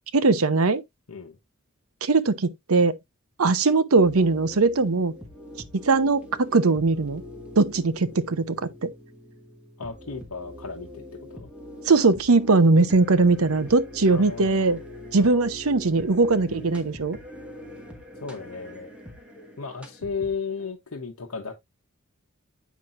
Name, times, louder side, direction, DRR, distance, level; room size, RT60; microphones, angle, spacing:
voice 1, 0.1-0.8 2.0-2.9 3.4-5.1 5.8-7.2 7.6-8.6 8.8-8.9 11.9-14.8 15.1-17.2, right 3 dB, 80° right, 0.8 m, -20 dB
sound 1, 4.0-20.7, left 1 dB, 5° right, 1.9 m, -43 dB
voice 2, 9.8-11.5 14.1-14.8 15.2-15.5 18.2-18.9 19.6-21.5, left 5 dB, 85° left, 1.0 m, -35 dB
8.3 x 5.9 x 2.6 m
head